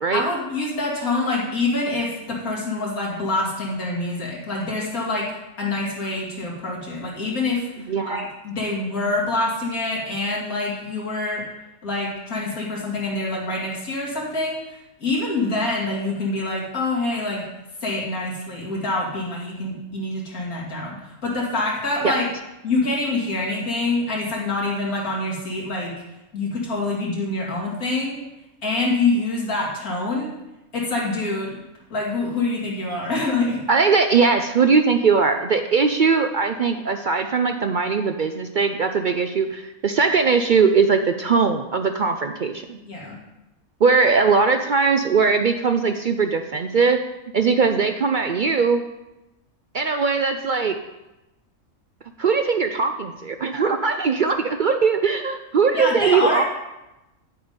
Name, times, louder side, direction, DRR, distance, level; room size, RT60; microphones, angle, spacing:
voice 1, 0.1-5.3 5.6-11.4 11.8-17.4 17.8-22.2 22.6-25.9 26.3-28.2 28.6-30.3 30.7-31.6 31.9-33.6 42.8-43.2 55.7-56.4, left 2 dB, 90° left, -4 dB, 3.0 m, -26 dB
voice 2, 7.9-8.2 22.0-22.2 33.7-42.8 43.8-47.0 47.3-48.8 49.7-50.8 52.2-56.4, right 5 dB, 65° right, 7 dB, 0.4 m, -20 dB
9.5 x 7.9 x 5.2 m, 0.97 s
omnidirectional pair, 1.5 m